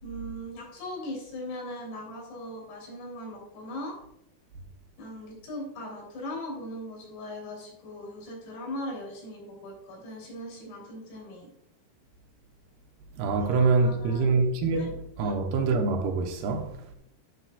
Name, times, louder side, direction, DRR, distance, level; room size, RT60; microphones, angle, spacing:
voice 1, 0.0-4.0 5.0-11.5 13.5-14.9 15.2-15.4, left 1 dB, 70° left, 5.1 m, -39 dB
voice 2, 13.2-16.9, right 4 dB, 80° right, 2.8 m, -25 dB
11.5 x 7.6 x 2.3 m
omnidirectional pair, 4.9 m